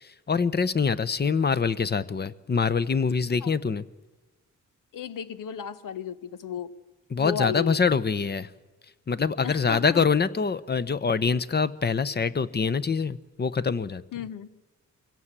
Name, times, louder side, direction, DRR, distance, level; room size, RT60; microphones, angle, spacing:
voice 1, 0.0-3.8 7.1-8.5 9.1-14.0, left 5 dB, 30° left, 14 dB, 0.9 m, -25 dB
voice 2, 4.9-6.7 7.2-7.8 9.4-10.0 14.1-14.5, left 7 dB, 85° left, 14 dB, 1.1 m, -33 dB
24.0 x 16.5 x 7.5 m, 1.2 s
cardioid pair, 90°, 31 cm